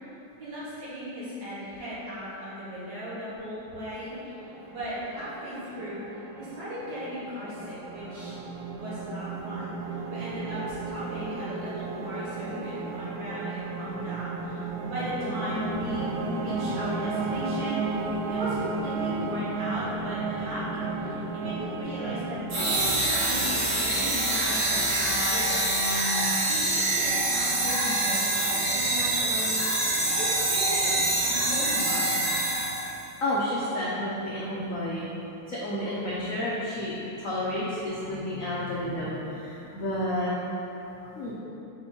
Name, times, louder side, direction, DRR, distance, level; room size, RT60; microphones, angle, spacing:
voice 1, 0.4-6.0 6.4-8.3 8.7-25.6 26.5-32.2, equal, 55° right, -10 dB, 2.2 m, -37 dB
sound 1, 3.7-22.8, right 3 dB, 80° right, 1.3 m, -34 dB
sound 2, 22.5-33.0, right 2 dB, 40° right, 1.4 m, -25 dB
voice 2, 33.2-35.1 35.5-40.3 40.8-41.3, left 1 dB, 75° left, -6 dB, 0.7 m, -31 dB
5.4 x 4.3 x 4.3 m, 3.0 s
omnidirectional pair, 2.4 m